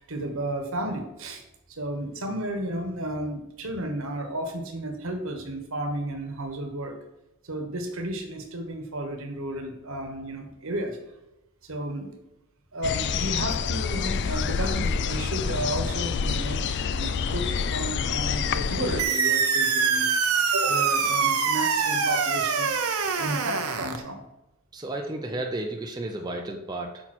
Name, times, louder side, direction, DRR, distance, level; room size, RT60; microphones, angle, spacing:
voice 1, 0.0-1.4 1.7-7.0 7.4-11.0 11.6-12.1 12.7-22.9 23.1-24.2, right 1 dB, 65° right, 4 dB, 1.3 m, -33 dB
sound 1, 12.8-19.0, left 6 dB, 55° left, 0.4 m, -27 dB
sound 2, 19.0-24.0, right 5 dB, 90° right, 0.8 m, -24 dB
voice 2, 24.7-27.1, right 2 dB, 20° right, 1 dB, 0.6 m, -33 dB
6.2 x 5.6 x 4.4 m, 0.96 s
head